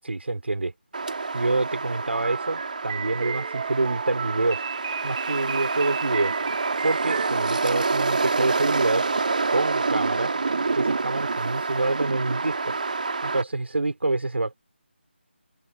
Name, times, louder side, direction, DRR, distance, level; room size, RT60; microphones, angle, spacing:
voice 1, 0.0-0.7 1.3-4.6 5.0-6.3 6.8-9.1 9.5-10.3 10.7-12.7 13.2-14.5, right 2 dB, 75° right, 4.7 m, -26 dB
sound 1, 0.9-13.4, right 4 dB, 45° right, 3.4 m, -27 dB
sound 2, 2.1-7.3, right 8 dB, 20° right, 2.5 m, -34 dB
open air
figure-of-eight pair, 175°, 6 cm